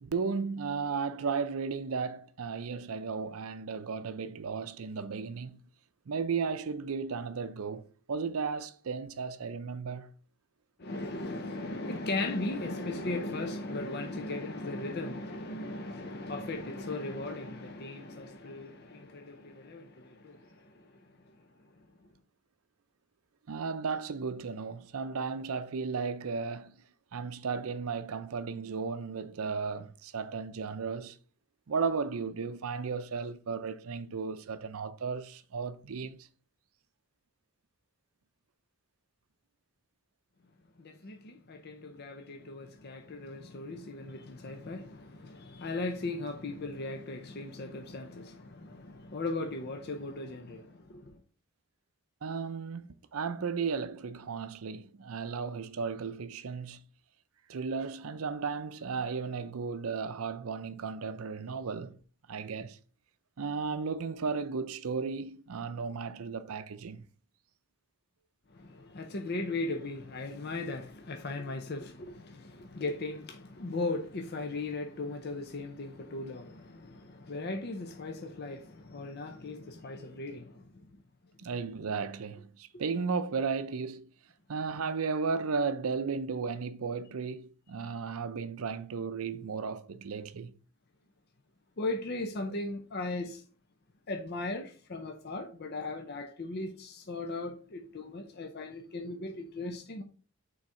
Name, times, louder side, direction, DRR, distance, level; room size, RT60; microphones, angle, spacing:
voice 1, 0.0-5.6 6.1-10.1 23.5-26.8 27.1-31.2 31.7-36.2 52.2-56.8 57.5-62.0 62.3-62.8 63.4-67.0 81.4-84.1 84.5-90.5, right 5 dB, 70° right, 0.5 m, -35 dB
voice 2, 10.8-21.5 21.8-22.1 40.8-51.2 68.5-81.0 87.8-88.0 91.8-93.4 94.1-100.0, left 2 dB, 45° left, 0.6 m, -38 dB
6.2 x 3.9 x 4.3 m
head